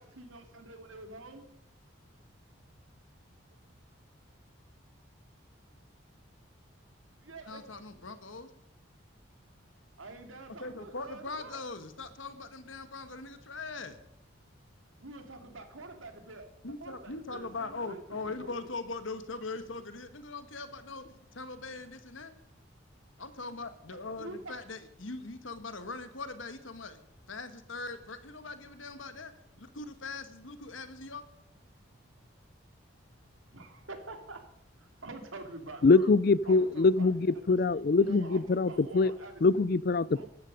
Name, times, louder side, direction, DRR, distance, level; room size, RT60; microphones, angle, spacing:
voice 1, 0.0-1.4 7.2-7.6 10.0-11.6 15.0-16.5 16.8-18.5 24.2-24.6 33.5-34.5 34.8-36.1 36.4-37.1 37.5-39.4 40.1-40.2, right 2 dB, 85° right, 2.5 m, -47 dB
voice 2, 7.5-8.5 10.6-14.0 16.6-21.0 21.3-22.3 23.2-27.0 27.3-29.3 29.6-31.2, left 3 dB, 75° left, 1.6 m, -41 dB
voice 3, 35.8-39.1 39.4-40.2, left 3 dB, 50° left, 0.4 m, -24 dB
15.0 x 12.5 x 5.4 m
head